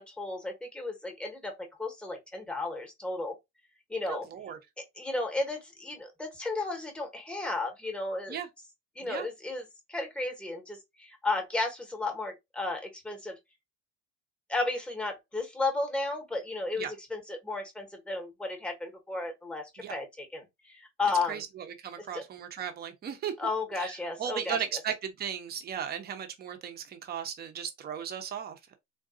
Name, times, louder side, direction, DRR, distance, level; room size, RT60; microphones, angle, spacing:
voice 1, 0.0-3.3 3.9-4.3 5.0-8.4 9.0-13.4 14.5-21.4 22.0-22.2 23.4-24.6, left 3 dB, 5° left, 0.9 m, -34 dB
voice 2, 4.1-4.6 8.3-8.5 9.0-9.3 16.8-16.9 19.8-20.0 21.3-23.3 23.7-28.8, right 8 dB, 25° right, 0.6 m, -36 dB
3.8 x 2.3 x 2.3 m
supercardioid pair, 125°, 37 cm